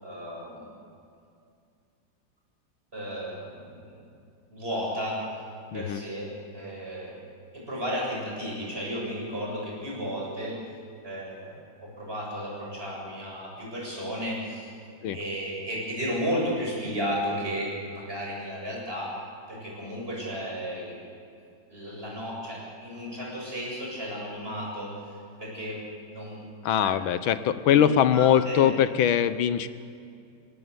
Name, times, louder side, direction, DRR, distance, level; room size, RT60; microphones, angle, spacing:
voice 1, 0.0-0.7 2.9-4.0 4.5-5.4 5.7-7.2 7.5-10.6 11.0-14.7 15.1-19.1 19.5-21.0 21.7-25.1 25.4-25.8 26.1-26.4 26.8-27.0 27.7-28.7, equal, 30° right, -4 dB, 8.0 m, -33 dB
voice 2, 5.7-6.0 15.0-15.2 26.6-29.7, left 9 dB, 85° left, 13 dB, 1.7 m, -22 dB
27.0 x 18.0 x 8.1 m, 2.4 s
omnidirectional pair, 2.1 m